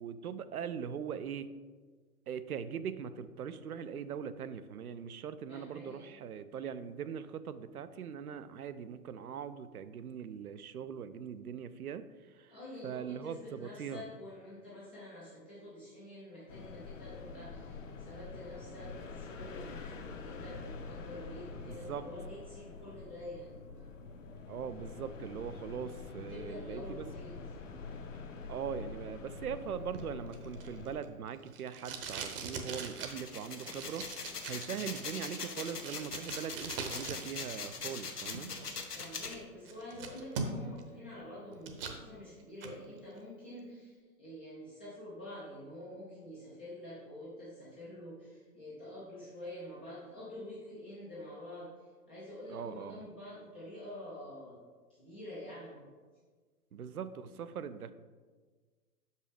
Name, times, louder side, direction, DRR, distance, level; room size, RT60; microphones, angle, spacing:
voice 1, 0.0-1.5 2.3-12.0 12.3-12.5 12.8-14.0 21.7-22.0 24.5-27.1 28.5-38.5 52.5-53.0 56.7-57.9, right 7 dB, 70° right, 12 dB, 0.6 m, -41 dB
voice 2, 5.5-6.1 12.5-23.9 26.2-27.6 38.9-54.6 54.9-55.9, left 1 dB, 5° left, -9 dB, 0.4 m, -47 dB
sound 1, 16.5-31.0, left 4 dB, 55° left, 1.0 m, -46 dB
Packing tape duct tape, 29.9-37.5 37.7-38.8 39.2-39.3 39.7-40.8 41.2-42.0 42.4-42.8, right 4 dB, 40° right, 0.9 m, -42 dB
sound 2, 33.0-39.3, left 5 dB, 80° left, 1.1 m, -41 dB
6.2 x 5.3 x 5.0 m, 1.4 s
figure-of-eight pair, 115°, 46 cm